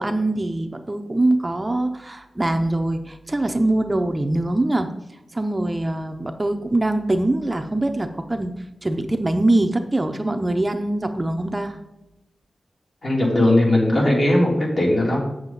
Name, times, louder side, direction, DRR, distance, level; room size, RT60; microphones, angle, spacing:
voice 1, 0.0-4.9 5.3-8.6 8.8-11.8, right 2 dB, 20° right, 7 dB, 0.6 m, -23 dB
voice 2, 13.0-15.2, left 1 dB, 55° left, -3 dB, 2.9 m, -18 dB
8.1 x 7.3 x 3.9 m, 0.96 s
wide cardioid pair, 95°, 0 cm